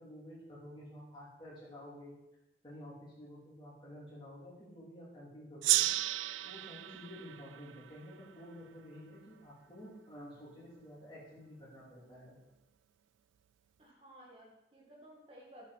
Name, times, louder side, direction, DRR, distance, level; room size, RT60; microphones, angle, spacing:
voice 1, 0.0-2.2 2.6-5.9 6.4-12.4, equal, 25° left, -6 dB, 3.2 m, -51 dB
Gong, 5.6-8.8, right 16 dB, 85° right, 0.3 m, -34 dB
voice 2, 13.8-15.7, right 1 dB, 30° right, -3 dB, 2.0 m, -56 dB
9.9 x 7.5 x 4.2 m, 0.93 s
head